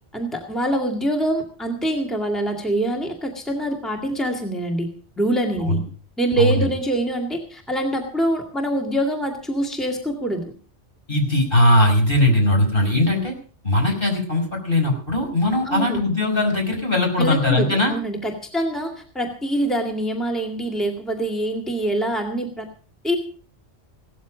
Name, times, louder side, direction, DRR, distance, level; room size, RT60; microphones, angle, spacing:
voice 1, 0.1-4.9 5.2-5.8 6.2-10.4 15.7-16.0 17.2-22.7 23.0-23.2, right 1 dB, ahead, 1 dB, 2.1 m, -24 dB
voice 2, 6.4-6.7 11.1-13.3 13.6-17.9, left 1 dB, 45° left, 1 dB, 5.7 m, -19 dB
17.0 x 13.5 x 5.1 m, 0.42 s
omnidirectional pair, 1.2 m